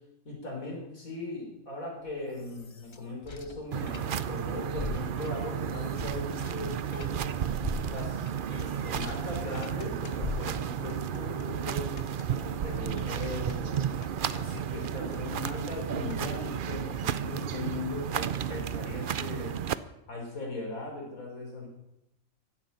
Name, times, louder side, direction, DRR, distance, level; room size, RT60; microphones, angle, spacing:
voice 1, 0.2-7.4 7.9-12.0 12.3-13.9 14.3-19.6 20.1-21.7, left 2 dB, 85° left, 0 dB, 4.5 m, -39 dB
sound 1, 2.1-4.4 4.7-9.8 10.2-10.9, left 4 dB, 30° left, 0.6 m, -42 dB
sound 2, 3.7-19.7, right 9 dB, 55° right, 0.6 m, -33 dB
sound 3, 9.0-10.4 10.6-16.2, left 4 dB, 55° left, 1.6 m, -50 dB
16.0 x 12.0 x 5.4 m, 0.86 s
omnidirectional pair, 1.4 m